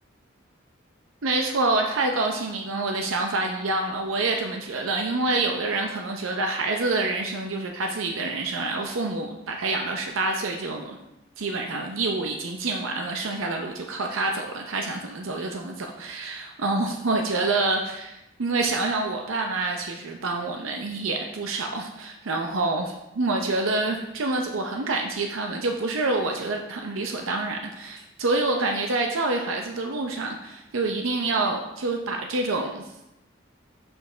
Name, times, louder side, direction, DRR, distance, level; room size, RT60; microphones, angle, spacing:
voice 1, 1.2-11.0 11.4-32.9, right 2 dB, 85° right, 3 dB, 0.6 m, -27 dB
7.1 x 5.3 x 3.8 m, 0.89 s
head